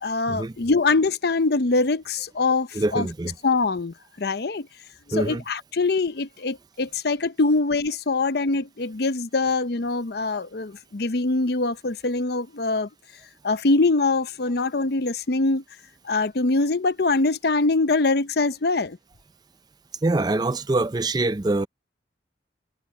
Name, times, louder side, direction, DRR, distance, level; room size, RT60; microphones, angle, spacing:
voice 1, 0.0-3.1 3.4-4.7 5.2-12.9 13.4-15.6 16.0-19.0, left 3 dB, 55° left, 0.7 m, -23 dB
voice 2, 2.7-3.4 5.1-5.4 20.0-21.7, right 2 dB, 20° right, 0.4 m, -24 dB
head